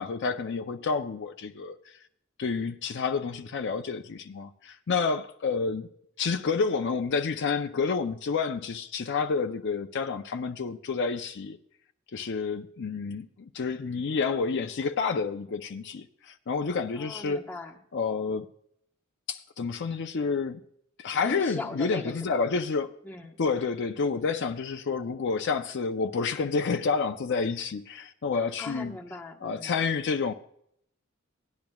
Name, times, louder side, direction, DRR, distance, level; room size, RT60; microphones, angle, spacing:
voice 1, 0.0-2.0 2.4-5.9 6.2-11.6 12.1-17.5 17.9-18.5 19.3-20.6 21.0-23.0 23.4-29.0 29.4-30.3, left 5 dB, 60° left, 0.5 m, -29 dB
voice 2, 17.0-17.8 21.2-22.4 23.0-23.4 28.3-29.7, left 2 dB, 10° left, 1.0 m, -40 dB
18.0 x 10.5 x 2.3 m
head